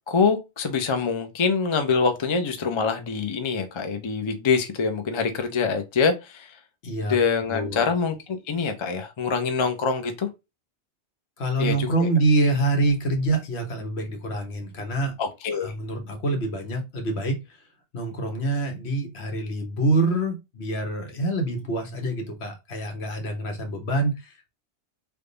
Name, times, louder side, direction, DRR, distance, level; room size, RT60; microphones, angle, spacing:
voice 1, 0.1-6.5 7.1-10.3 11.6-12.1 15.2-15.7, left 5 dB, 40° left, 0.4 m, -25 dB
voice 2, 6.8-7.2 7.5-7.9 11.4-15.1 15.5-17.6 17.9-24.5, right 2 dB, 70° left, 1.2 m, -26 dB
3.5 x 2.2 x 3.8 m
omnidirectional pair, 1.2 m